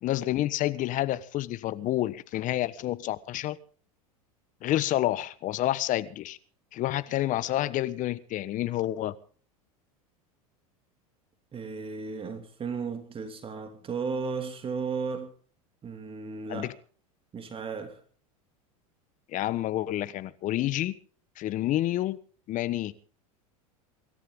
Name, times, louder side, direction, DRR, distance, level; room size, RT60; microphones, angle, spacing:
voice 1, 0.0-3.6 4.6-6.4 6.7-9.1 16.5-16.7 19.3-20.9 21.4-22.2 22.5-22.9, left 14 dB, 45° left, 1.2 m, -29 dB
voice 2, 11.5-15.3 15.8-16.7 17.3-18.0, right 5 dB, 30° right, 2.7 m, -34 dB
24.5 x 13.5 x 3.8 m
hypercardioid pair, 95°, 19 cm